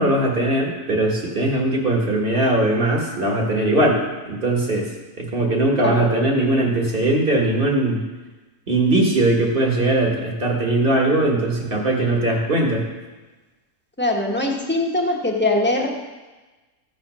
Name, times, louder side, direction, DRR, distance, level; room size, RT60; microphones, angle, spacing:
voice 1, 0.0-4.0 4.3-4.9 5.2-8.1 8.7-12.9, right 1 dB, 35° right, 0 dB, 1.7 m, -20 dB
voice 2, 14.0-16.0, left 2 dB, 10° left, -1 dB, 1.2 m, -22 dB
14.5 x 5.2 x 6.2 m, 1.2 s
omnidirectional pair, 1.6 m